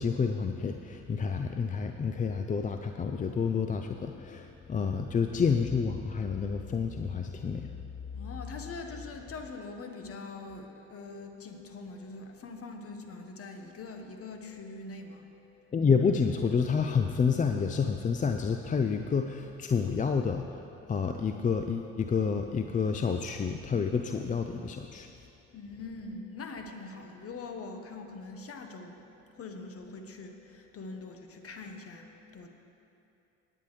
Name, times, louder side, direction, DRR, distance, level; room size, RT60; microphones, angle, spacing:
voice 1, 0.0-7.7 15.7-20.6 20.9-25.1, left 5 dB, 25° left, 6 dB, 0.5 m, -29 dB
voice 2, 8.1-15.6 25.5-32.5, left 3 dB, 45° left, 5 dB, 1.4 m, -43 dB
18.5 x 8.8 x 3.3 m, 2.7 s
hypercardioid pair, 60°, 33 cm